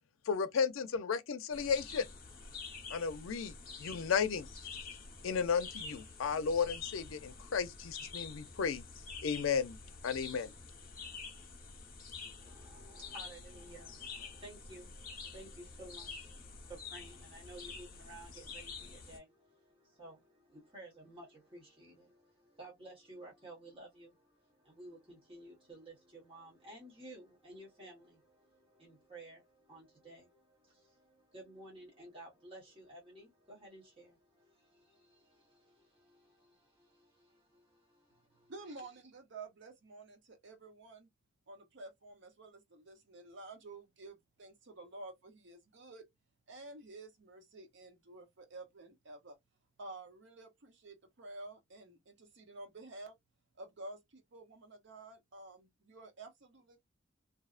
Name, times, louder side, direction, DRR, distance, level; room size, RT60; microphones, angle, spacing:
voice 1, 0.3-2.1 2.9-4.5 5.2-8.8 9.2-9.8 10.0-10.5, left 6 dB, 90° left, 0.5 m, -34 dB
sound 1, 1.5-19.2, left 5 dB, 50° left, 0.8 m, -48 dB
voice 2, 12.4-38.5, right 1 dB, 30° right, 1.1 m, -54 dB
voice 3, 38.5-41.1 41.5-46.1 46.5-49.4 49.8-53.2 53.6-56.9, right 2 dB, 65° right, 0.8 m, -51 dB
2.6 x 2.1 x 2.4 m
head